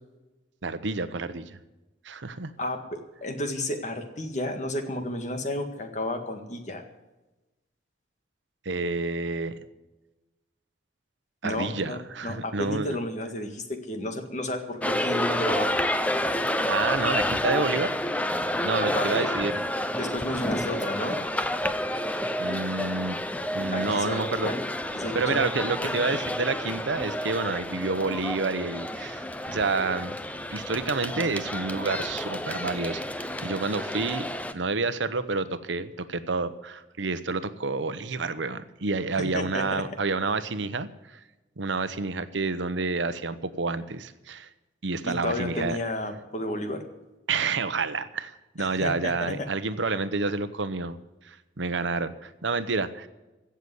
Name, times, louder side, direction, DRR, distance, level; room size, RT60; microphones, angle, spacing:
voice 1, 0.6-1.5 2.0-2.5 8.6-9.6 11.4-13.0 16.7-17.9 18.6-19.6 22.4-23.2 23.5-24.5 25.1-30.1 30.5-34.3 34.5-41.2 41.6-44.5 44.8-45.8 47.3-51.0 51.2-53.1, right 3 dB, 80° right, 12 dB, 0.9 m, -29 dB
voice 2, 2.6-6.8 11.4-15.8 18.9-19.3 20.0-21.2 23.7-24.6 24.9-25.5 25.8-25.9 39.2-39.8 45.0-46.8 48.6-49.4, left 1 dB, 40° left, 5 dB, 1.8 m, -32 dB
sound 1, 14.8-34.5, left 1 dB, 10° left, 0.6 m, -29 dB
16.0 x 6.9 x 9.6 m, 1.1 s
head